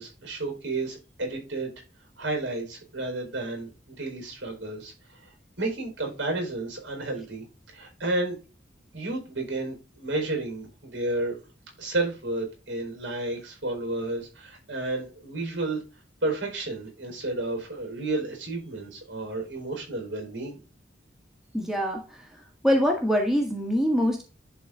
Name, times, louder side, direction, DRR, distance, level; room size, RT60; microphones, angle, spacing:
voice 1, 0.0-1.7 2.2-4.9 5.6-7.4 7.7-8.4 8.9-11.4 11.8-15.8 16.2-20.6, right 2 dB, 70° right, 2 dB, 4.8 m, -31 dB
voice 2, 21.5-24.2, equal, ahead, 0 dB, 1.7 m, -25 dB
11.0 x 4.2 x 3.8 m, 0.32 s
head